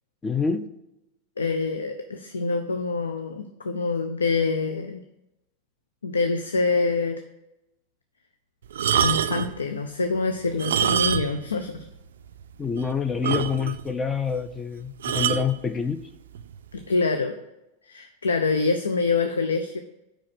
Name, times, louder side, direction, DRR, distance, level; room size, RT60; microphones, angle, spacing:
voice 1, 0.2-0.7 12.6-16.1, left 6 dB, 15° left, 10 dB, 0.4 m, -27 dB
voice 2, 1.4-5.0 6.0-7.2 9.0-11.8 16.7-17.3 17.9-19.8, left 4 dB, 75° left, 7 dB, 0.5 m, -25 dB
sound 1, 8.7-9.6 10.5-11.5 11.8-11.9 12.4-12.5 12.8-12.9 13.2-13.9 15.0-15.5 16.3-16.6, right 8 dB, 60° right, 0.3 m, -25 dB
5.1 x 4.8 x 5.8 m, 0.92 s
figure-of-eight pair, 90°, 0 cm